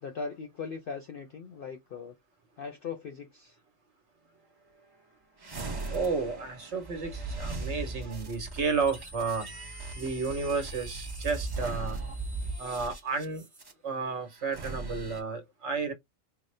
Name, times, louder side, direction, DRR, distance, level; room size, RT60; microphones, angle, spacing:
voice 1, 0.0-2.2 2.6-3.6, left 5 dB, 55° left, 0.7 m, -39 dB
sound 1, 5.4-13.7 14.4-15.2, right 3 dB, 25° right, 0.6 m, -38 dB
voice 2, 5.9-9.5 9.9-12.0 12.6-13.4 13.8-15.9, right 4 dB, 65° right, 1.3 m, -32 dB
4.0 x 2.1 x 3.2 m
omnidirectional pair, 1.3 m